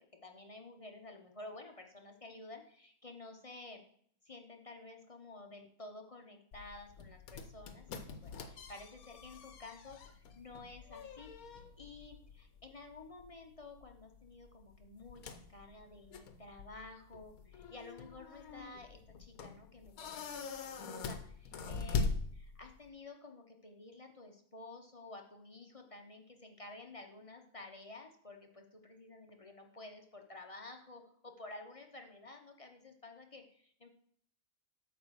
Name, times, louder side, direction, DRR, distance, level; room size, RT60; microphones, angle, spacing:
voice 1, 0.2-3.8 4.2-11.3 11.8-22.1 22.5-33.9, left 2 dB, 30° left, 3 dB, 0.7 m, -52 dB
sound 1, 6.5-22.9, left 4 dB, 85° left, 1.2 m, -43 dB
8.5 x 4.0 x 6.4 m, 0.62 s
omnidirectional pair, 1.5 m